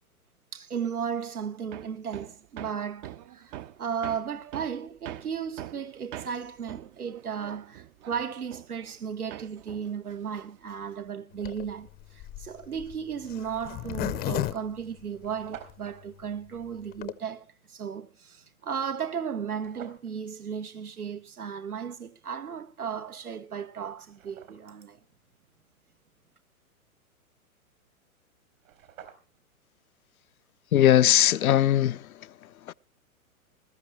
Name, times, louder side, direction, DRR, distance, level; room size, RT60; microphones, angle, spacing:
voice 1, 0.5-25.0, right 7 dB, 85° right, 1.5 m, -35 dB
Hammer, 1.7-9.1 9.3-11.1, right 13 dB, 30° right, 0.7 m, -44 dB
Zipper (clothing), 11.4-15.7 16.2-16.3 16.5-16.6 16.8-17.1, left 16 dB, 20° left, 0.7 m, -34 dB
sound 1, 14.9-15.0 15.2-16.0 19.5-20.1 23.1-23.2 23.7-24.9 28.2-28.3 28.5-29.5, right 10 dB, 65° right, 4.1 m, -49 dB
voice 2, 30.7-32.7, left 11 dB, 75° left, 0.7 m, -21 dB
20.5 x 13.5 x 3.1 m
hypercardioid pair, 115°, 43 cm